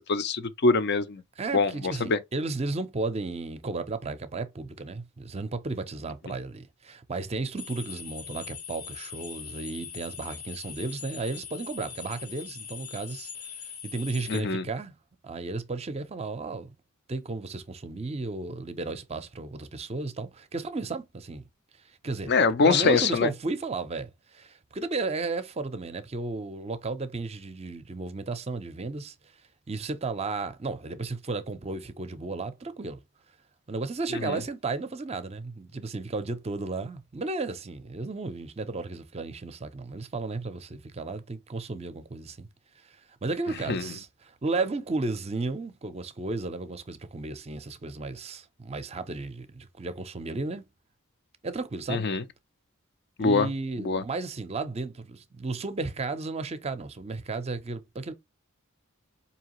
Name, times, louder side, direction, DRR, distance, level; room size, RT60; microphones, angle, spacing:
voice 1, 0.1-1.2 1.5-2.2 14.3-14.6 22.3-23.3 34.1-34.4 43.7-43.9 51.9-52.2 53.2-53.5 53.8-54.0, left 4 dB, 50° left, 0.5 m, -24 dB
voice 2, 1.4-13.5 13.8-14.9 15.2-16.7 17.1-21.5 22.0-22.4 22.6-29.1 29.7-33.0 33.7-42.5 42.8-50.7 51.4-52.1 53.2-58.1, right 3 dB, 30° right, 0.5 m, -34 dB
sound 1, 7.6-14.4, left 7 dB, 85° left, 1.1 m, -41 dB
4.7 x 2.8 x 2.9 m
head